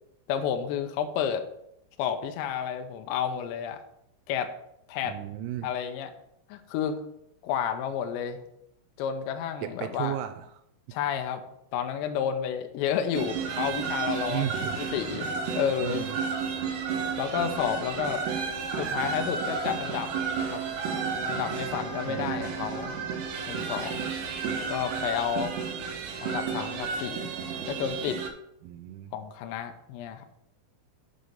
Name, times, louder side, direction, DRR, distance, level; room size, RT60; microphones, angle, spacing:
voice 1, 0.3-1.5 2.0-3.8 4.3-4.5 4.9-5.2 5.6-6.1 6.5-7.0 7.4-8.4 9.0-10.2 10.9-11.4 11.7-16.0 17.2-18.3 18.8-20.1 20.4-20.6 21.2-22.9 23.5-24.1 24.7-25.5 26.2-27.3 27.7-28.2 29.1-30.3, left 8 dB, 80° left, 6 dB, 2.6 m, -31 dB
voice 2, 5.1-5.7 9.6-10.6 14.3-14.8 15.1-15.2 15.8-16.2 22.0-22.5 28.6-29.1, right 13 dB, 90° right, 8 dB, 3.3 m, -35 dB
sound 1, 13.1-28.3, right 5 dB, 75° right, 2.6 m, -32 dB
8.2 x 3.8 x 6.9 m, 0.77 s
omnidirectional pair, 6.0 m